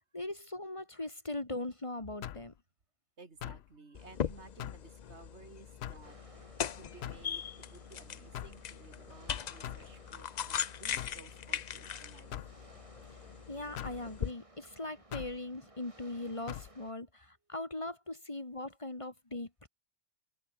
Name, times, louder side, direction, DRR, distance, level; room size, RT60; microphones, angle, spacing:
voice 1, 0.1-2.5 13.5-19.7, left 2 dB, 30° left, 1.9 m, -40 dB
sound 1, 2.2-2.5 3.4-3.7 4.6-4.9 5.8-6.1 7.0-7.3 8.3-8.6 9.6-9.9 11.0-11.2 12.3-12.6 13.8-14.0 15.1-15.4 16.5-16.7, left 11 dB, 70° left, 0.9 m, -42 dB
voice 2, 3.2-6.5 6.7-12.3, right 3 dB, 70° right, 2.7 m, -56 dB
sound 2, 4.0-14.3, left 8 dB, 45° left, 0.6 m, -40 dB
sound 3, 6.0-16.9, right 1 dB, 30° right, 3.2 m, -59 dB
omnidirectional pair, 1.2 m